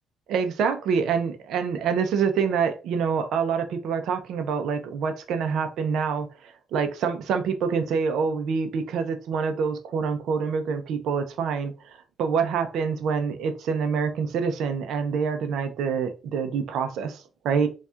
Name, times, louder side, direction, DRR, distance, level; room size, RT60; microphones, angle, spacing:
voice 1, 0.3-17.7, right 6 dB, 80° right, 0.5 m, -26 dB
4.3 x 2.3 x 2.3 m
cardioid pair, 90°, 0 cm